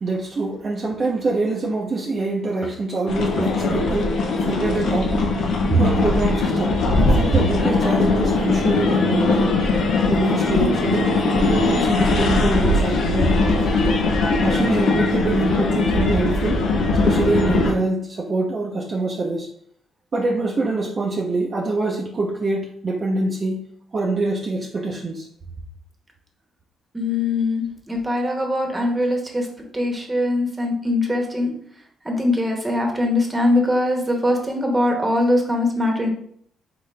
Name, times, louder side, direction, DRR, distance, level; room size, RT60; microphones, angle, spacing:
voice 1, 0.0-9.6 10.1-13.8 14.4-16.6 17.0-19.5 20.1-23.6 23.9-25.3, right 3 dB, 40° right, -2 dB, 0.7 m, -24 dB
sound 1, 3.1-17.7, left 3 dB, 70° left, 0.7 m, -20 dB
voice 2, 26.9-29.5 29.7-31.5 32.0-36.1, left 1 dB, 15° right, 1 dB, 1.2 m, -21 dB
3.9 x 3.8 x 3.3 m, 0.64 s
cardioid pair, 90°, 0 cm